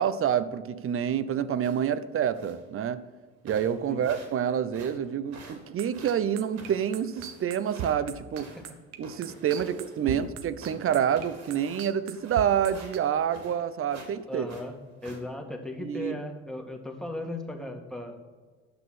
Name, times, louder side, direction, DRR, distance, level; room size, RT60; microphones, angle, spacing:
voice 1, 0.0-3.0 3.4-8.5 9.0-14.5 15.8-16.2, right 9 dB, 45° right, 14 dB, 0.7 m, -28 dB
sound 1, 1.6-2.0 2.3-2.7 3.1-3.2 3.5-4.4 4.7-7.9 8.3-10.3 10.6-13.6 13.9-14.1 14.4-15.2, right 3 dB, 65° right, 2.8 m, -48 dB
sound 2, 5.8-13.0, right 10 dB, 80° right, 1.0 m, -38 dB
voice 2, 14.3-14.7 15.0-18.2, left 1 dB, ahead, 2 dB, 1.8 m, -37 dB
9.8 x 5.9 x 6.1 m, 1.5 s
supercardioid pair, 80°, 30 cm